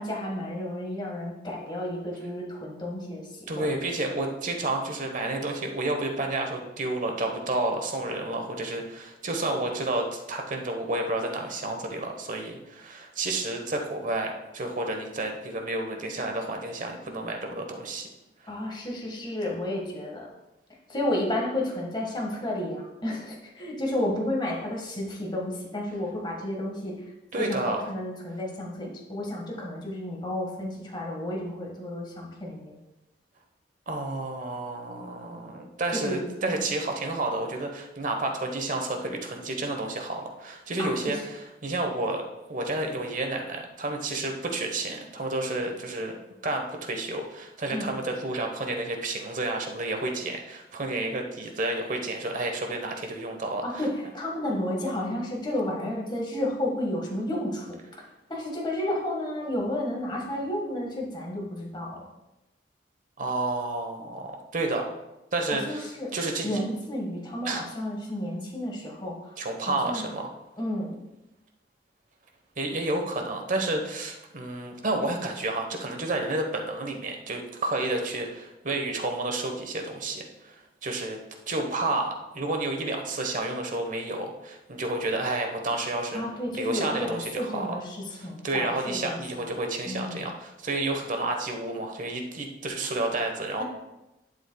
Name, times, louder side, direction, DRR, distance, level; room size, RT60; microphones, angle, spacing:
voice 1, 0.0-3.8 18.5-20.3 20.9-27.0 27.4-32.7 35.9-36.6 40.8-41.2 47.7-47.9 53.6-57.7 58.3-62.1 65.7-66.1 66.4-69.2 69.6-70.1 70.6-70.9 86.1-89.4 89.9-90.2, left 1 dB, 25° left, -2 dB, 1.6 m, -32 dB
voice 2, 3.5-18.1 27.3-27.8 33.9-42.2 42.5-46.2 46.4-53.6 63.2-64.9 65.3-66.6 67.4-67.6 69.4-70.3 72.6-81.2 81.5-86.2 86.5-87.7 88.1-93.6, right 2 dB, 50° right, 3 dB, 1.2 m, -30 dB
11.5 x 7.3 x 2.3 m, 0.97 s
head